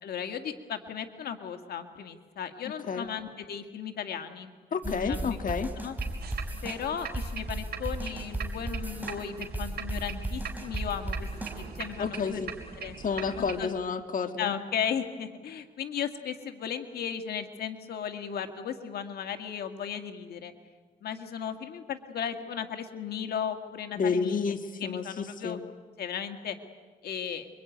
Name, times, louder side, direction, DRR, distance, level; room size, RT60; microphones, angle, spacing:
voice 1, 0.0-4.5 4.8-6.0 6.6-11.3 11.5-12.4 12.8-13.0 13.4-13.7 14.4-20.5 21.0-25.6 26.0-26.6 27.0-27.5, left 8 dB, 90° left, 7 dB, 1.8 m, -36 dB
voice 2, 4.7-5.7 12.0-12.5 13.0-14.5 24.0-25.6, left 5 dB, 60° left, 7 dB, 1.6 m, -30 dB
sound 1, 4.8-11.9, right 2 dB, 10° right, 4.4 m, -35 dB
sound 2, 6.0-13.6, right 7 dB, 85° right, 3.7 m, -41 dB
26.5 x 23.5 x 9.3 m, 1.4 s
cardioid pair, 70°, 16 cm